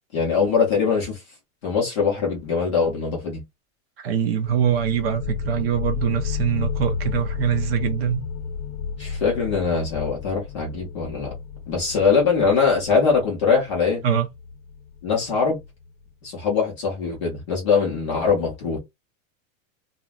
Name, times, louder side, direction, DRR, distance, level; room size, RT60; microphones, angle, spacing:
voice 1, 0.1-1.2 1.6-3.4 9.0-11.3 11.7-14.0 15.0-15.6 16.2-18.8, left 5 dB, 25° left, 0.4 m, -22 dB
voice 2, 4.0-8.2 14.0-14.3, right 8 dB, 45° right, 0.5 m, -23 dB
sound 1, 4.5-15.9, left 6 dB, 85° left, 0.6 m, -32 dB
2.3 x 2.0 x 3.4 m
supercardioid pair, 180°, 42 cm